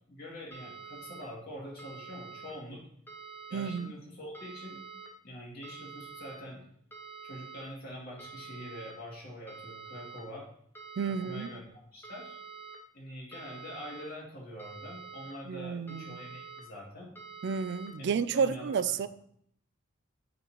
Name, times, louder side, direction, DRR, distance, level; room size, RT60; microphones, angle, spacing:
voice 1, 0.1-2.8 3.5-4.8 5.2-6.6 7.2-10.5 11.2-12.4 12.9-17.1 18.0-18.8, equal, 50° left, 2.4 m, -45 dB
sound 1, 0.5-1.2 1.8-2.5 3.1-3.8 4.3-5.1 5.6-6.4 6.9-7.6 8.2-8.9 9.5-10.2 10.7-11.5 12.0-12.8 13.3-14.0 14.6-15.3 15.9-16.6 17.2-17.9, right 5 dB, 10° left, 0.9 m, -47 dB
voice 2, 3.5-3.9 11.0-11.5 15.5-16.2 17.4-19.1, right 6 dB, 60° right, 0.3 m, -31 dB
9.0 x 4.0 x 3.0 m
head